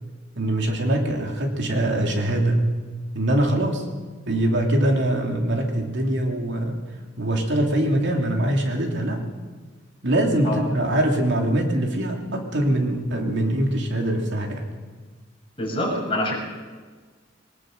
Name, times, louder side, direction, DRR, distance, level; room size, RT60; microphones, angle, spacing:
voice 1, 0.4-2.7 3.1-3.8 4.2-6.8 7.2-9.2 10.0-14.6, right 1 dB, 65° right, 2 dB, 3.0 m, -23 dB
voice 2, 15.6-16.4, left 1 dB, 30° left, -2 dB, 6.2 m, -25 dB
22.0 x 20.0 x 6.6 m, 1.4 s
head